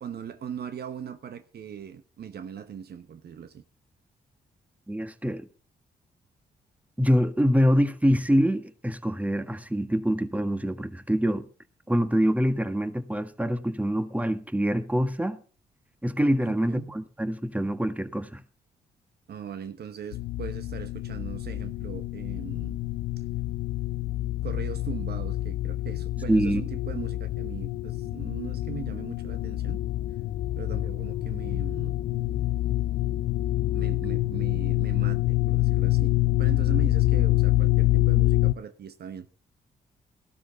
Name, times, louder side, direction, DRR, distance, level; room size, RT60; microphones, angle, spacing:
voice 1, 0.0-3.6 16.4-16.9 19.3-22.8 24.4-29.8 30.6-31.9 33.7-39.3, right 8 dB, 60° right, 1.0 m, -39 dB
voice 2, 4.9-5.4 7.0-11.5 11.9-15.4 16.0-18.4 26.3-26.6, equal, 10° right, 1.6 m, -25 dB
sound 1, 20.1-38.5, left 16 dB, 75° left, 0.5 m, -26 dB
15.0 x 12.5 x 4.0 m
hypercardioid pair, 45°, 18 cm